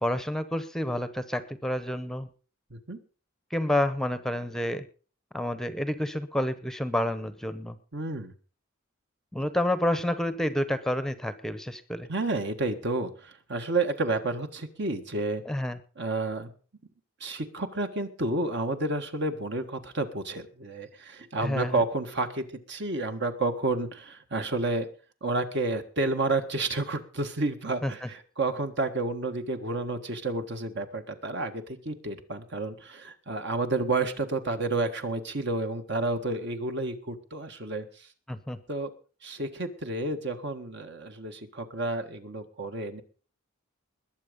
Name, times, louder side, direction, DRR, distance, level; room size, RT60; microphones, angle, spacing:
voice 1, 0.0-2.3 3.5-4.9 5.3-7.8 9.3-12.1 15.5-15.8 21.4-21.8 27.8-28.1 38.3-38.6, left 1 dB, 5° left, 12 dB, 0.8 m, -29 dB
voice 2, 7.9-8.3 12.1-15.4 16.0-16.5 17.2-24.9 25.2-37.9 38.7-38.9 39.2-43.0, right 2 dB, 60° right, 7 dB, 1.7 m, -30 dB
21.0 x 7.5 x 5.2 m, 0.39 s
head